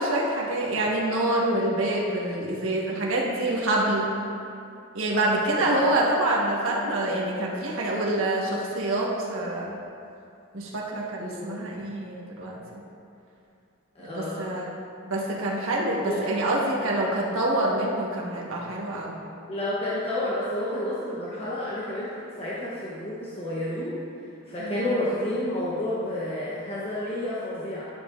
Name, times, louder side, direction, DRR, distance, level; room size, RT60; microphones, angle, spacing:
voice 1, 0.0-4.1 4.9-9.7 10.5-12.8 14.1-14.7 15.0-19.1 24.6-24.9, right 1 dB, 75° right, -3 dB, 1.3 m, -26 dB
voice 2, 5.5-6.1 11.2-11.6 13.9-14.5 16.0-16.2 19.5-27.8, left 1 dB, 30° left, -8 dB, 0.9 m, -30 dB
11.5 x 7.1 x 2.5 m, 2.6 s
head